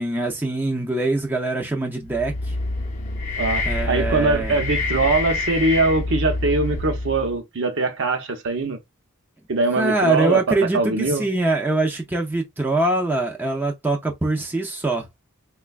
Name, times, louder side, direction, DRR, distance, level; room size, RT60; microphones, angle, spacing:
voice 1, 0.0-2.6 3.6-4.6 9.7-15.1, right 2 dB, 10° right, 0.5 m, -23 dB
sound 1, 2.0-7.4, left 2 dB, 35° left, 0.6 m, -26 dB
voice 2, 3.4-8.8 9.5-11.3, right 3 dB, 60° right, 0.7 m, -22 dB
4.2 x 2.2 x 2.3 m
head